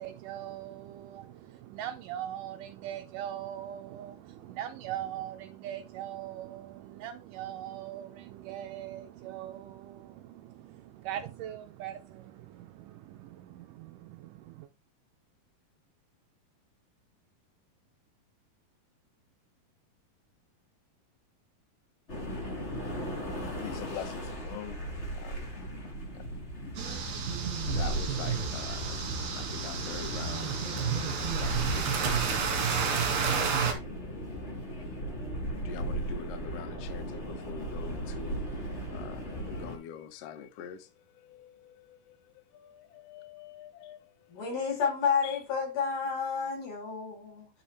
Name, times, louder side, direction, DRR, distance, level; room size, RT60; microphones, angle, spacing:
voice 1, 0.0-14.7, right 11 dB, 80° right, 1.9 m, -41 dB
sound 1, 22.1-39.8, right 1 dB, 25° left, 1.5 m, -37 dB
voice 2, 23.4-24.8 25.1-25.4 26.1-26.2 27.7-29.0 29.4-31.9 32.7-33.2 35.5-44.5 45.2-45.4, left 9 dB, 70° left, 1.5 m, -45 dB
sound 2, 26.8-33.7, right 6 dB, 55° right, 2.8 m, -31 dB
voice 3, 44.3-47.5, left 6 dB, 90° left, 6.2 m, -30 dB
9.4 x 5.5 x 3.3 m
omnidirectional pair, 4.2 m